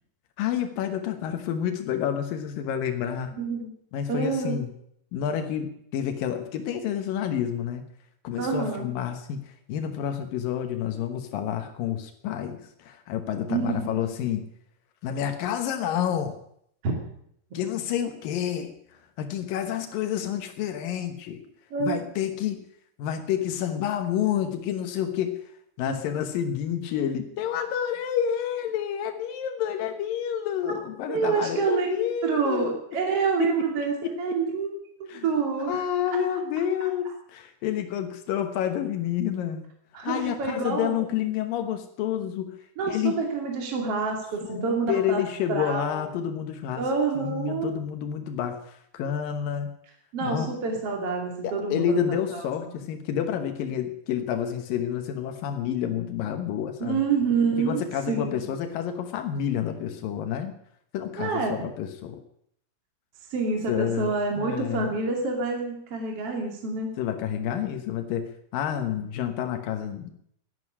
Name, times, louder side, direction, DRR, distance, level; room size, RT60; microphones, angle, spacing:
voice 1, 0.4-3.3 3.9-4.7 5.1-7.8 8.2-14.5 15.0-16.4 17.5-18.7 19.2-21.4 21.8-22.6 23.0-25.4 25.8-32.8 33.4-33.5 34.0-34.4 35.1-35.3 35.7-39.7 40.0-42.6 42.8-43.2 44.4-46.8 47.2-49.7 50.2-50.5 51.4-57.0 57.6-60.5 60.9-62.2 63.7-64.9 67.0-70.2, left 9 dB, 85° left, 6 dB, 1.9 m, -29 dB
voice 2, 3.4-3.7 4.1-4.6 8.4-8.9 13.5-14.1 16.8-17.0 21.7-22.0 25.8-26.0 30.7-30.8 31.1-32.0 32.2-32.6 32.9-34.7 35.0-35.8 39.9-41.0 42.8-45.2 45.5-46.2 46.8-47.7 50.1-52.5 56.8-58.5 61.2-61.6 63.3-66.9, right 4 dB, 40° right, 1 dB, 2.5 m, -27 dB
12.0 x 11.0 x 9.8 m, 0.70 s
omnidirectional pair, 5.9 m